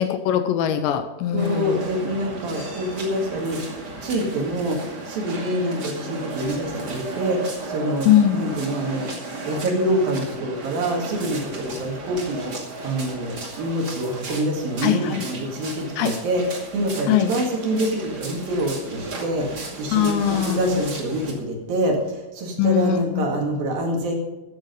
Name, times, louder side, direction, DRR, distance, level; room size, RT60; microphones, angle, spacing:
voice 1, 0.0-1.8 8.1-8.4 14.8-15.2 16.0-16.1 17.1-17.3 19.9-20.8 22.6-23.3, left 10 dB, 80° left, 9 dB, 2.9 m, -21 dB
voice 2, 1.3-3.6 4.0-9.1 9.4-24.1, right 1 dB, 55° right, 1 dB, 3.3 m, -26 dB
sound 1, 1.4-21.3, right 2 dB, 35° right, 1.8 m, -35 dB
14.0 x 9.0 x 5.3 m, 1.1 s
omnidirectional pair, 5.5 m